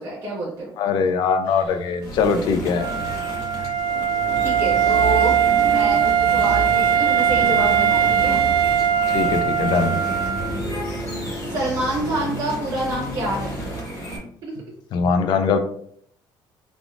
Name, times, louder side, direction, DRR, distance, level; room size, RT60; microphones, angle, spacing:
voice 1, 0.0-0.7 4.4-8.4 11.4-13.6 14.4-14.5, right 1 dB, 45° right, -6 dB, 0.9 m, -27 dB
voice 2, 0.8-2.9 9.1-10.0 14.9-15.6, left 5 dB, 55° left, 6 dB, 0.4 m, -21 dB
sound 1, 2.0-14.2, right 1 dB, 40° left, 1.2 m, -30 dB
Wind instrument woodwind instrument, 2.7-10.6, right 9 dB, 60° right, 0.4 m, -20 dB
3.4 x 2.4 x 2.4 m, 0.66 s
cardioid pair, 175°, 9 cm